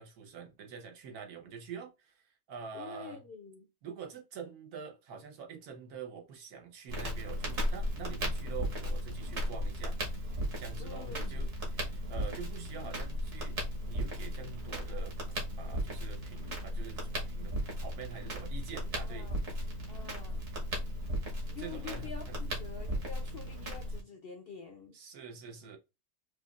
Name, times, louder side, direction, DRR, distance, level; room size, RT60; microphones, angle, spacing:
voice 1, 0.0-3.2 3.8-13.6 13.9-19.3 19.6-19.7 21.6-22.4 24.9-25.8, right 6 dB, 85° right, 1.4 m, -46 dB
voice 2, 2.7-3.7 10.8-11.5 17.0-17.1 19.0-19.4 19.9-20.4 21.5-25.0, left 6 dB, 65° left, 0.6 m, -47 dB
Crackle, 6.9-24.0, equal, 50° right, 1.4 m, -36 dB
4.9 x 2.4 x 2.4 m
omnidirectional pair, 1.5 m